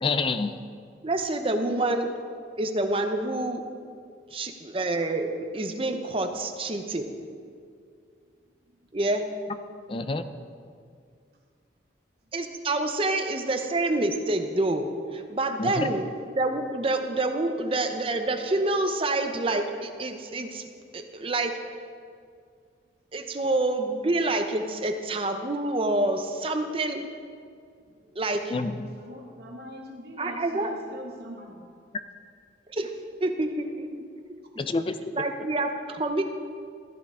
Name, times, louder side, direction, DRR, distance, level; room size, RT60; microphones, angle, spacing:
voice 1, 0.0-0.5 9.9-10.3 15.6-15.9 28.5-28.9 34.6-35.1, left 3 dB, 30° left, 10 dB, 0.4 m, -27 dB
voice 2, 1.0-2.1 2.6-3.6 4.3-7.1 8.9-9.2 12.3-16.1 16.3-21.6 23.1-27.1 28.2-28.5 30.2-30.7 32.7-32.9 33.2-33.5 33.8-33.9 35.1-36.2, right 2 dB, 30° right, 6 dB, 0.7 m, -27 dB
voice 3, 8.2-8.9 9.8-9.9 10.7-10.8 12.2-12.3 27.8-28.2 28.9-31.7 34.4-34.8, equal, 55° right, 0 dB, 1.5 m, -45 dB
14.5 x 11.0 x 3.7 m, 2.2 s
head